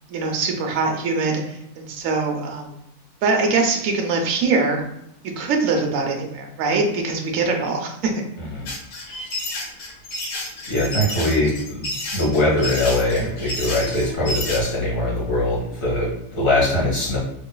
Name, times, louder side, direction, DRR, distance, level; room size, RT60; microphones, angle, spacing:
voice 1, 0.1-2.8 3.2-4.8 5.4-8.1, right 3 dB, 65° right, 2 dB, 0.9 m, -22 dB
voice 2, 8.4-8.7 10.7-11.9 12.1-17.2, left 1 dB, 60° left, -5 dB, 1.8 m, -22 dB
sound 1, 8.7-14.6, left 1 dB, 85° left, 1.4 m, -30 dB
3.7 x 3.1 x 2.2 m, 0.80 s
omnidirectional pair, 1.7 m